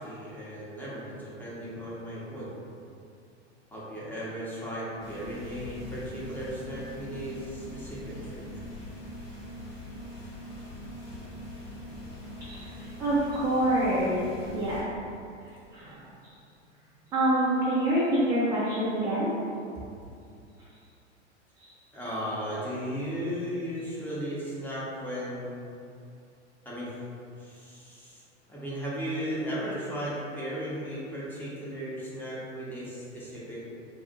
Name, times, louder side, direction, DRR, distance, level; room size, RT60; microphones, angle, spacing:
voice 1, 0.0-2.5 3.7-8.5 21.9-25.6 26.6-27.0 27.4-28.2 28.5-33.6, equal, 5° left, -8 dB, 0.7 m, -36 dB
sound 1, 5.0-14.8, equal, 50° left, 1.2 m, -42 dB
voice 2, 12.5-14.2 14.5-14.8 15.7-16.0 17.1-19.3 22.4-22.5, right 1 dB, 10° right, -9 dB, 0.3 m, -26 dB
2.6 x 2.4 x 3.8 m, 2.5 s
figure-of-eight pair, 90°, 36 cm